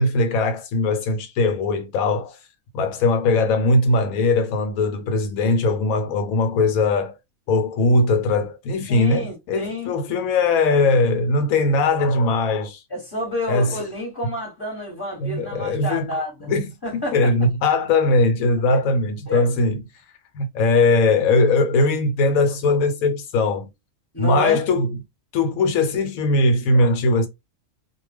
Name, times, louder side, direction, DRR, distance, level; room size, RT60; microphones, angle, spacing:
voice 1, 0.0-2.4 2.7-7.1 7.5-12.8 13.5-13.8 15.2-16.7 16.9-19.8 20.3-23.7 24.2-24.9 25.3-27.3, left 2 dB, 90° left, 1.1 m, -20 dB
voice 2, 8.9-9.9 12.9-16.5 16.8-17.3 18.7-18.8 19.3-19.5 24.1-24.6, left 1 dB, 20° left, 1.0 m, -29 dB
2.4 x 2.2 x 3.3 m
omnidirectional pair, 1.4 m